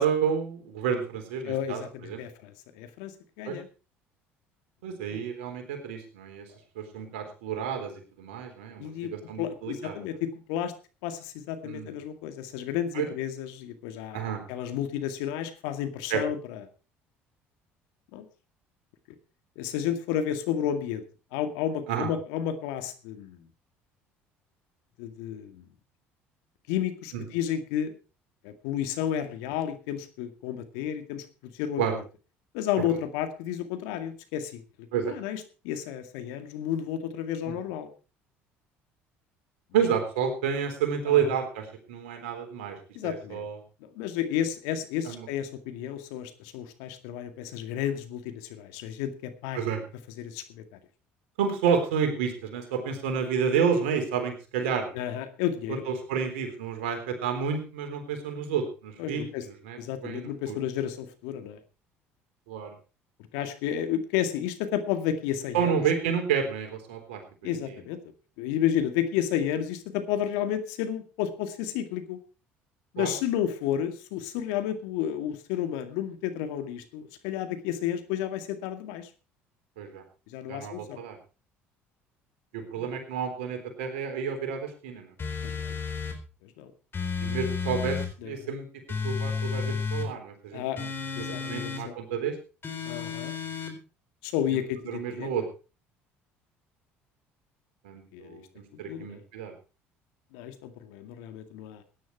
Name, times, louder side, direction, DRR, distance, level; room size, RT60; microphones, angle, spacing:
voice 1, 0.0-2.2 3.5-3.6 4.8-6.5 6.8-7.9 8.2-10.0 11.6-11.9 12.9-13.1 14.1-14.4 16.1-16.2 21.9-22.1 27.1-27.2 31.8-32.0 34.9-35.1 37.5-37.6 39.7-42.8 43.0-43.6 45.1-45.3 49.5-49.8 51.4-54.9 55.7-60.6 62.5-62.7 65.5-67.2 73.0-73.1 79.8-80.0 80.5-81.2 82.5-85.1 87.2-88.0 88.2-88.7 89.0-90.9 91.2-92.3 94.5-94.6 94.9-95.4 97.8-98.4 98.8-99.5, right 7 dB, 80° right, 6 dB, 3.8 m, -30 dB
voice 2, 1.4-3.7 5.1-5.2 8.8-10.7 11.0-16.6 18.1-18.2 19.6-21.0 21.3-23.5 25.0-25.7 26.7-27.9 28.4-31.3 31.5-32.0 32.5-37.9 41.1-41.3 42.9-43.5 43.8-49.6 50.2-50.8 54.9-55.8 59.0-59.5 59.8-61.6 63.3-65.8 67.4-68.0 68.4-72.2 72.9-79.1 80.3-81.0 82.6-82.9 85.4-85.7 86.4-86.7 88.2-88.6 90.5-90.8 91.2-92.0 92.8-93.3 94.2-95.4 98.1-98.4 98.9-99.2 100.3-101.8, left 10 dB, 75° left, 9 dB, 2.1 m, -32 dB
sound 1, 85.2-86.2 86.9-88.1 88.9-90.1 90.8-91.8 92.6-93.7, left 5 dB, 35° left, 4.3 m, -32 dB
17.0 x 10.5 x 4.6 m, 0.34 s
hypercardioid pair, 65°, 6 cm